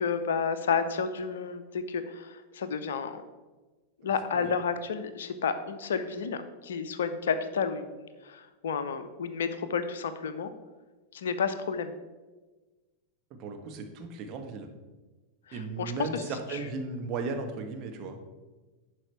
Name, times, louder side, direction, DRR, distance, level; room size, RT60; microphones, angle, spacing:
voice 1, 0.0-3.2 4.0-10.5 11.1-11.9 15.5-16.2 16.5-16.6, left 6 dB, 60° left, 11 dB, 0.6 m, -31 dB
voice 2, 13.4-14.7 15.5-18.2, right 4 dB, 35° right, 4 dB, 1.2 m, -36 dB
11.0 x 4.9 x 4.5 m, 1.2 s
figure-of-eight pair, 90°, 0 cm